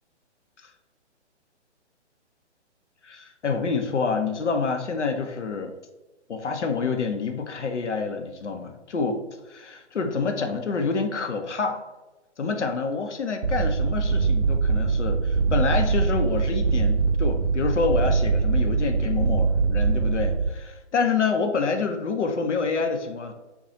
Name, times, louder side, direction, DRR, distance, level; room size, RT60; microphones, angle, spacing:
voice 1, 3.0-5.7 6.3-11.8 12.4-23.3, left 4 dB, 75° left, 5 dB, 0.7 m, -27 dB
sound 1, 13.4-20.5, right 4 dB, 70° right, 0.5 m, -23 dB
5.3 x 2.2 x 2.8 m, 1.1 s
figure-of-eight pair, 130°, 35 cm